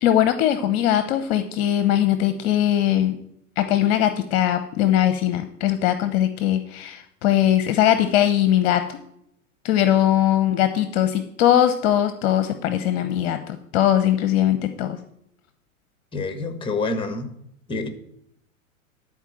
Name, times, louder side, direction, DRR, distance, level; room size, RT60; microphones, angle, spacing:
voice 1, 0.0-3.2 3.6-9.0 9.6-15.0, left 11 dB, 45° left, 10 dB, 0.9 m, -20 dB
voice 2, 16.1-17.3 17.7-17.9, left 3 dB, 10° left, 8 dB, 1.5 m, -27 dB
12.0 x 4.6 x 7.6 m, 0.73 s
hypercardioid pair, 100°, 43 cm